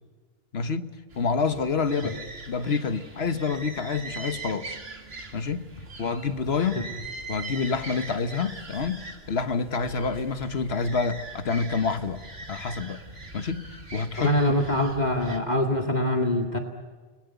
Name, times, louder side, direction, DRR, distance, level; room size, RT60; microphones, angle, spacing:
voice 1, 0.5-4.8 5.3-5.7 6.0-6.9 7.3-12.2 12.5-13.0 13.3-14.6, left 5 dB, 80° left, 1.6 m, -28 dB
sound 1, 1.1-15.4, right 3 dB, 75° right, 2.6 m, -42 dB
voice 2, 14.2-16.6, left 1 dB, 45° left, 2.2 m, -24 dB
30.0 x 21.0 x 8.1 m
omnidirectional pair, 1.0 m